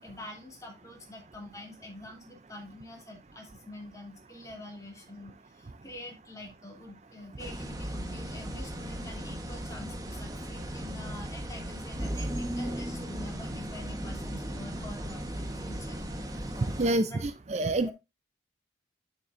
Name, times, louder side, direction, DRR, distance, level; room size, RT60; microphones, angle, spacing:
voice 1, 0.0-16.0 17.1-17.2 17.8-17.9, left 1 dB, 15° left, 1 dB, 2.9 m, -46 dB
sound 1, 7.4-16.9, equal, 20° right, 1.2 m, -36 dB
voice 2, 16.8-17.9, right 2 dB, 35° right, 11 dB, 0.5 m, -27 dB
9.3 x 7.4 x 2.6 m, 0.24 s
head